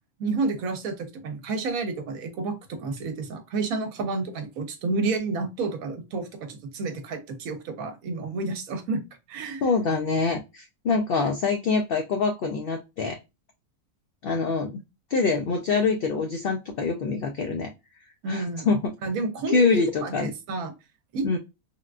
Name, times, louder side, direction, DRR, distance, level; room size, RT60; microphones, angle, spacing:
voice 1, 0.2-9.0 9.3-9.6 18.2-18.7 19.0-20.7 21.1-21.4, right 3 dB, 75° right, 1.1 m, -30 dB
voice 2, 9.6-13.2 14.2-14.7 15.1-17.7 18.3-18.9 19.5-20.3 21.2-21.4, left 4 dB, 80° left, 0.5 m, -25 dB
3.6 x 2.3 x 2.3 m
omnidirectional pair, 1.5 m